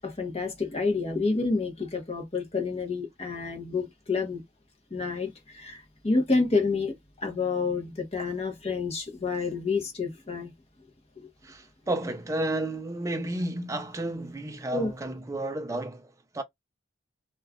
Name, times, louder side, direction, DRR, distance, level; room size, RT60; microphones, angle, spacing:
voice 1, 0.0-4.4 4.9-10.5 11.2-11.3 14.7-14.9, left 4 dB, 30° left, 0.8 m, -29 dB
voice 2, 11.4-16.4, right 1 dB, 15° right, 0.4 m, -32 dB
2.3 x 2.3 x 3.5 m
head